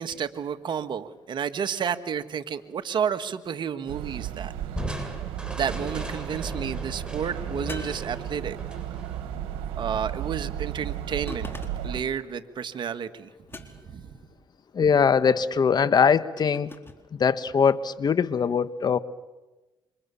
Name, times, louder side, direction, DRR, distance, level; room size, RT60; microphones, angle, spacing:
voice 1, 0.0-4.5 5.5-8.6 9.8-11.5 11.8-13.3 13.6-14.1, right 7 dB, 60° right, 10 dB, 1.7 m, -31 dB
sound 1, 3.9-12.0, right 11 dB, 90° right, 1.6 m, -34 dB
Crushing, 4.8-10.1, right 1 dB, 10° right, 7.6 m, -37 dB
sound 2, 7.7-8.8 11.3-12.0 13.5-14.1 16.4-17.0, left 2 dB, 25° left, 4.1 m, -43 dB
voice 2, 14.7-16.7 17.1-19.0, left 6 dB, 50° left, 13 dB, 1.5 m, -21 dB
28.5 x 26.0 x 7.2 m, 1.1 s
supercardioid pair, 65°, 9 cm